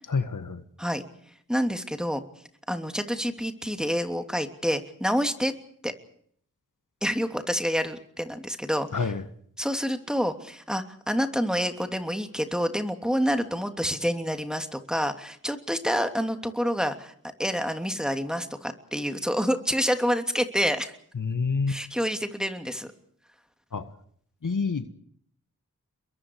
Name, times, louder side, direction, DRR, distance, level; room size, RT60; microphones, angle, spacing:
voice 1, 0.1-0.6 8.9-9.2 21.2-21.8 23.7-23.9 24.4-24.9, left 4 dB, 65° left, 10 dB, 1.8 m, -27 dB
voice 2, 1.5-2.2 2.7-5.5 5.8-5.9 7.0-9.0 9.6-17.1 17.4-20.9 21.7-22.9, equal, ahead, 6 dB, 3.0 m, -28 dB
30.0 x 22.5 x 4.8 m, 0.62 s
cardioid pair, 45°, 34 cm